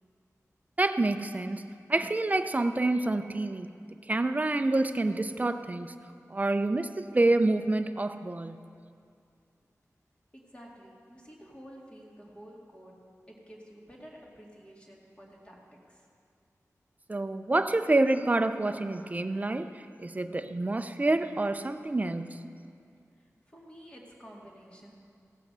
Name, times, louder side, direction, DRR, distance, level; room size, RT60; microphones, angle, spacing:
voice 1, 0.8-3.7 4.1-5.9 6.3-8.6 17.1-22.4, right 2 dB, 25° right, 0.5 m, -28 dB
voice 2, 10.3-16.0 23.2-25.0, equal, 20° left, 2.2 m, -51 dB
16.0 x 5.8 x 6.7 m
wide cardioid pair, 85°, 6 cm